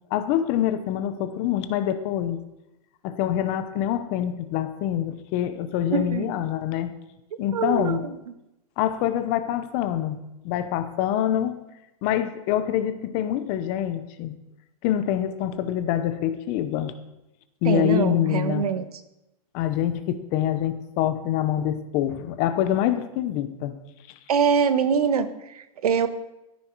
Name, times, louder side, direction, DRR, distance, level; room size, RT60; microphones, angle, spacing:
voice 1, 0.1-2.4 3.0-6.9 7.4-8.0 8.8-11.6 12.0-14.3 14.8-16.9 17.6-18.7 19.5-23.8, left 11 dB, 25° left, 11 dB, 0.7 m, -25 dB
voice 2, 5.9-6.3 7.5-8.1 17.6-18.9 24.3-26.1, right 6 dB, 80° right, 11 dB, 1.2 m, -24 dB
13.5 x 9.6 x 4.6 m, 0.91 s
hypercardioid pair, 170°, 19 cm